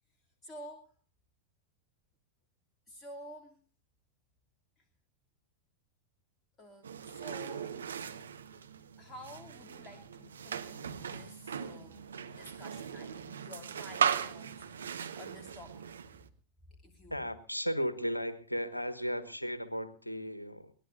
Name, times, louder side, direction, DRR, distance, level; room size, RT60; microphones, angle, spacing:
voice 1, 0.4-0.9 2.9-3.6 6.6-7.8 9.0-15.9 16.8-17.2, left 1 dB, 20° left, 2 dB, 2.7 m, -51 dB
sound 1, 6.8-16.3, right 7 dB, 70° right, 1.2 m, -38 dB
voice 2, 17.1-20.7, equal, 85° left, 14 dB, 1.4 m, -35 dB
23.0 x 19.5 x 2.6 m, 0.36 s
figure-of-eight pair, 90°, 0 cm